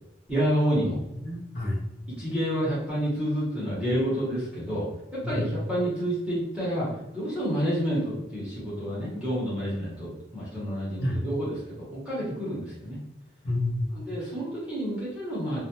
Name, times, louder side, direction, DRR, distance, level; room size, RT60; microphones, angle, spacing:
voice 1, 0.3-1.0 2.2-13.0 13.9-15.6, equal, 5° right, -9 dB, 0.7 m, -29 dB
voice 2, 0.9-1.8 5.2-5.6 11.0-11.4 13.4-13.9, left 1 dB, 55° left, -2 dB, 0.7 m, -29 dB
2.2 x 2.0 x 2.8 m, 0.91 s
head